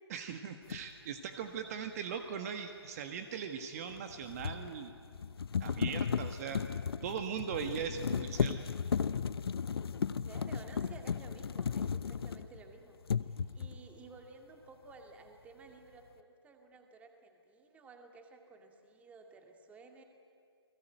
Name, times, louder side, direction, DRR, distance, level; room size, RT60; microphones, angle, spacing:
voice 1, 0.1-4.9 5.6-6.6 7.0-8.6, right 7 dB, 35° right, 7 dB, 1.6 m, -39 dB
sound 1, 0.7-0.9 3.9-12.7 13.0-13.8, left 6 dB, 60° left, 0.9 m, -35 dB
voice 2, 10.2-20.0, right 4 dB, 10° right, 4 dB, 2.2 m, -55 dB
29.5 x 20.5 x 9.2 m, 2.3 s
figure-of-eight pair, 145°, 14 cm